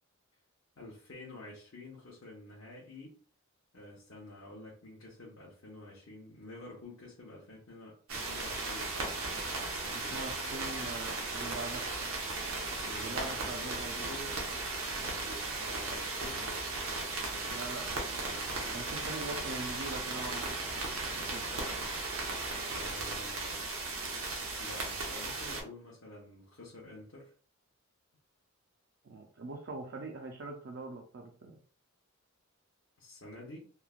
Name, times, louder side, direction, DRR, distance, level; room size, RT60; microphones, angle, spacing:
voice 1, 0.8-3.2 3.7-9.2 10.0-10.2 12.8-14.4 15.2-16.5 22.5-23.7 24.6-27.3 33.0-33.6, left 1 dB, 65° left, -4 dB, 0.7 m, -49 dB
sound 1, 8.1-25.6, right 3 dB, 80° right, 0.8 m, -36 dB
voice 2, 9.9-11.9 12.9-14.2 17.5-21.7 29.0-31.6, right 3 dB, 55° right, 1 dB, 0.4 m, -43 dB
3.1 x 2.1 x 2.3 m, 0.42 s
head